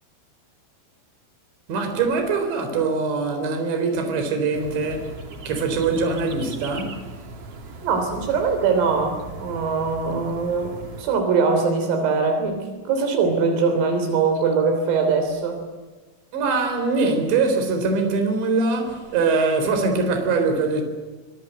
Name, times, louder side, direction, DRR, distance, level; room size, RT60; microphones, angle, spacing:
voice 1, 1.7-5.1 5.5-7.0 16.3-20.8, right 4 dB, 60° right, 6.0 m, -22 dB
sound 1, 4.5-11.0, right 2 dB, 35° right, 3.0 m, -38 dB
voice 2, 7.8-15.6, right 5 dB, 80° right, 5.9 m, -22 dB
25.0 x 25.0 x 7.9 m
omnidirectional pair, 5.8 m